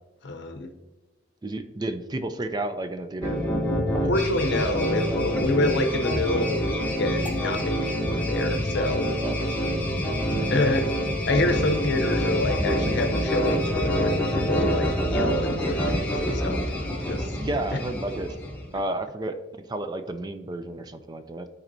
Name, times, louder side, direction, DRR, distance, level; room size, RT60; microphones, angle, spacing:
voice 1, 0.2-0.7 4.1-9.1 10.5-10.8 11.3-16.6 17.1-17.3, left 2 dB, 60° left, 6 dB, 0.7 m, -27 dB
voice 2, 1.4-3.4 4.0-4.4 4.7-5.2 9.2-9.8 10.3-10.5 17.4-21.5, right 1 dB, 20° right, 9 dB, 0.4 m, -32 dB
sound 1, 3.2-18.7, equal, 10° left, 0.9 m, -26 dB
11.5 x 4.3 x 2.6 m, 1.1 s
head